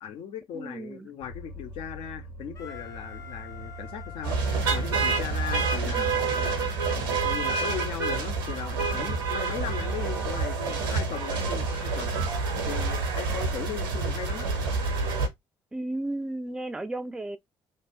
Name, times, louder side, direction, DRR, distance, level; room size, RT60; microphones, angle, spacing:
voice 1, 0.0-14.5, left 9 dB, 55° left, 0.5 m, -38 dB
voice 2, 0.5-1.1 5.8-6.1 15.7-17.4, right 1 dB, 5° right, 0.4 m, -34 dB
sound 1, 1.2-8.5, left 2 dB, 70° left, 1.0 m, -42 dB
Wind instrument woodwind instrument, 2.5-7.3, left 7 dB, 30° left, 0.8 m, -47 dB
sound 2, 4.2-15.3, right 4 dB, 70° right, 0.6 m, -28 dB
2.7 x 2.1 x 3.1 m
figure-of-eight pair, 50°, 12 cm